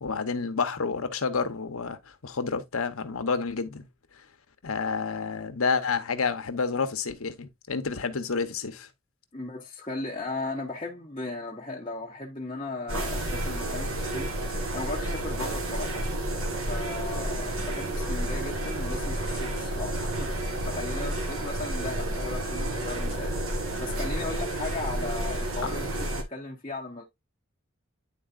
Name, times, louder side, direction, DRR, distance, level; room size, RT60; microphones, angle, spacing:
voice 1, 0.0-3.9 4.6-8.9, left 5 dB, 85° left, 1.0 m, -29 dB
voice 2, 9.3-16.1 16.7-27.0, left 3 dB, 25° left, 1.0 m, -37 dB
sound 1, 12.9-26.2, right 1 dB, 80° right, 1.4 m, -30 dB
10.0 x 4.1 x 2.5 m
head